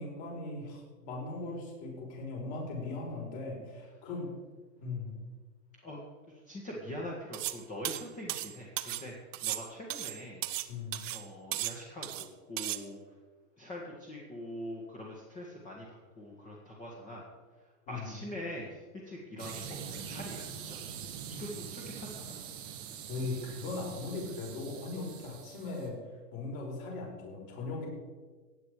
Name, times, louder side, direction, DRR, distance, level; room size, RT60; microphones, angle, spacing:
voice 1, 0.0-4.3 4.8-5.2 10.7-11.0 17.9-18.2 23.1-26.0 26.3-27.9, left 3 dB, 40° left, -1 dB, 4.9 m, -39 dB
voice 2, 6.3-9.2 9.4-10.4 11.1-13.0 13.6-17.2 17.9-20.8 21.3-22.4, left 1 dB, 15° left, -3 dB, 1.8 m, -43 dB
sound 1, 7.3-7.6 7.8-9.1 9.3-10.7 10.9-11.2 11.5-12.3 12.6-12.8, right 15 dB, 50° right, 0.9 m, -36 dB
sound 2, 19.4-25.9, right 7 dB, 10° right, 0.4 m, -44 dB
16.5 x 8.9 x 5.0 m, 1.3 s
hypercardioid pair, 150°, 49 cm